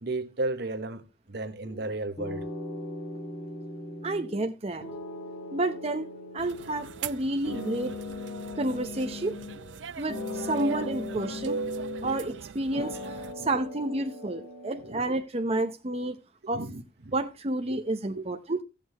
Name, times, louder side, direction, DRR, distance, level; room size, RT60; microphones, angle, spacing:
voice 1, 0.0-2.5 12.0-12.1 12.8-12.9 13.4-13.5 14.8-15.0 16.5-16.8, right 2 dB, 65° right, 1.1 m, -33 dB
sound 1, 1.6-1.9 2.2-4.5 4.8-7.1 7.4-9.8 10.1-12.4 12.7-15.0, left 2 dB, 80° left, 5.0 m, -39 dB
voice 2, 4.0-4.9 5.5-6.1 6.3-8.0 8.6-9.4 10.0-11.6 12.0-13.0 13.4-16.2 16.5-16.6 17.1-18.6, right 2 dB, 35° right, 0.8 m, -30 dB
sound 2, 6.4-13.3, right 6 dB, 90° right, 0.5 m, -39 dB
14.5 x 8.5 x 3.0 m
head